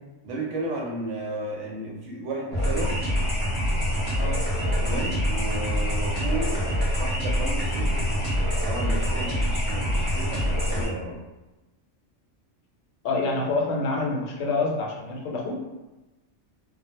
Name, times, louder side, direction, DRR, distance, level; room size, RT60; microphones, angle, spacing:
voice 1, 0.2-3.0 4.8-6.6 7.0-8.1 8.6-11.2, right 2 dB, 70° right, -1 dB, 0.8 m, -33 dB
sound 1, 2.5-10.8, equal, 10° left, 0.7 m, -25 dB
voice 2, 13.0-15.6, left 3 dB, 75° left, -1 dB, 0.9 m, -27 dB
2.1 x 2.0 x 2.9 m, 1.1 s
omnidirectional pair, 1.4 m